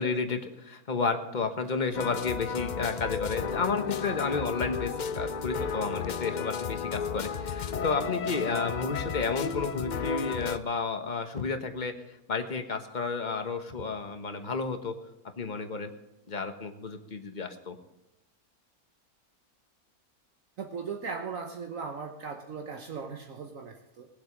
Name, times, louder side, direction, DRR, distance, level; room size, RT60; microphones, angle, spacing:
voice 1, 0.0-14.9 15.4-15.9 16.3-17.8, left 4 dB, 35° left, 6 dB, 1.3 m, -32 dB
sound 1, 1.9-10.6, left 6 dB, 70° left, 0.4 m, -33 dB
voice 2, 20.6-24.2, right 5 dB, 65° right, 4 dB, 1.4 m, -38 dB
20.0 x 7.9 x 5.2 m, 0.96 s
omnidirectional pair, 1.6 m